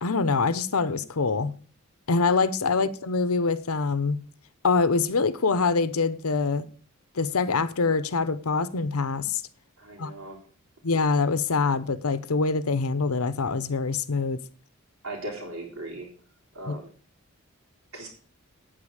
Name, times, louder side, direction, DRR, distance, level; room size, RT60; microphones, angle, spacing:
voice 1, 0.0-1.6 2.1-4.2 4.6-6.7 7.2-9.4 10.0-10.1 10.8-14.4 16.7-16.8, left 4 dB, 80° left, 0.8 m, -24 dB
voice 2, 9.8-10.4 15.0-16.1 16.5-16.9 17.9-18.1, right 1 dB, 70° right, 3.7 m, -38 dB
9.1 x 8.7 x 6.4 m
head